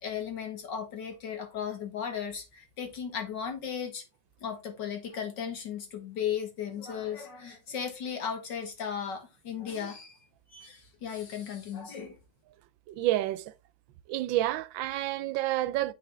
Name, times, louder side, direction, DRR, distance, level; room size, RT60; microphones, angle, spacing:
voice 1, 0.0-4.0 4.4-10.2 10.5-12.2, left 7 dB, 65° left, 2.3 m, -36 dB
voice 2, 12.9-13.5 14.1-15.9, right 15 dB, 90° right, 1.4 m, -29 dB
7.4 x 6.1 x 3.6 m
omnidirectional pair, 2.1 m